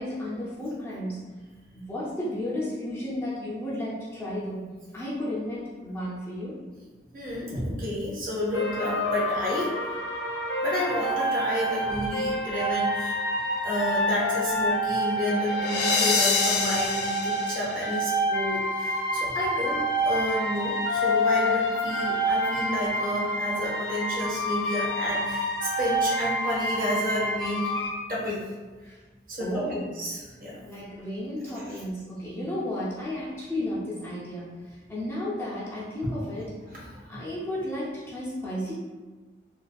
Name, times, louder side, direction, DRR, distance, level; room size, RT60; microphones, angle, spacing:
voice 1, 0.0-1.3 1.7-6.6 28.8-29.0 29.4-29.9 30.6-36.5 37.1-38.7, left 1 dB, 15° left, -8 dB, 0.4 m, -33 dB
voice 2, 7.1-9.8 10.6-13.2 13.6-27.7 28.1-28.5 29.3-30.6 36.7-37.3, left 1 dB, 50° right, -5 dB, 0.7 m, -30 dB
sound 1, 8.5-27.9, equal, 80° left, 0.4 m, -27 dB
2.5 x 2.3 x 2.3 m, 1.3 s
head